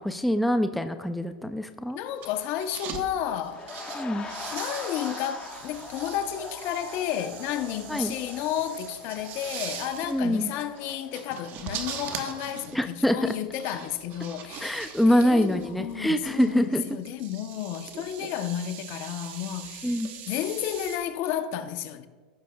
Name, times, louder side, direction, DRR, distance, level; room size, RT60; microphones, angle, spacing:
voice 1, 0.0-2.0 3.9-4.3 7.9-8.1 10.1-10.5 12.7-13.3 14.6-16.8 19.8-20.1, equal, ahead, 0.4 m, -25 dB
voice 2, 1.9-3.6 4.5-20.0 20.3-22.1, left 10 dB, 50° left, 0.8 m, -32 dB
sound 1, 2.1-3.1 3.4-21.0, right 8 dB, 45° right, 1.1 m, -42 dB
sound 2, 3.4-12.3 12.6-12.8, left 4 dB, 20° left, 1.2 m, -42 dB
16.0 x 6.2 x 2.3 m
supercardioid pair, 125°, 5 cm